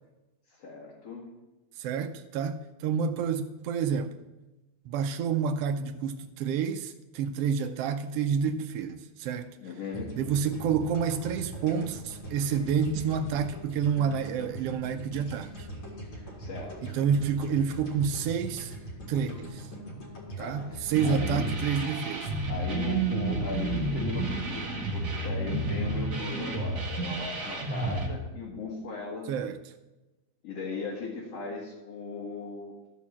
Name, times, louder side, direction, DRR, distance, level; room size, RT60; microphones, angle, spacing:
voice 1, 0.5-1.3 9.6-10.1 16.4-16.7 20.4-20.8 21.0-21.5 22.5-29.3 30.4-32.7, left 4 dB, 60° left, 2.7 m, -37 dB
voice 2, 1.8-4.2 4.9-9.6 10.2-15.7 16.8-18.8 19.1-19.7 20.4-22.3 29.3-29.6, right 6 dB, 90° right, 1.3 m, -29 dB
sound 1, 9.9-22.1, right 1 dB, 40° left, 2.4 m, -42 dB
sound 2, 20.9-28.1, right 2 dB, 35° right, 2.2 m, -31 dB
13.0 x 4.6 x 7.2 m
omnidirectional pair, 3.4 m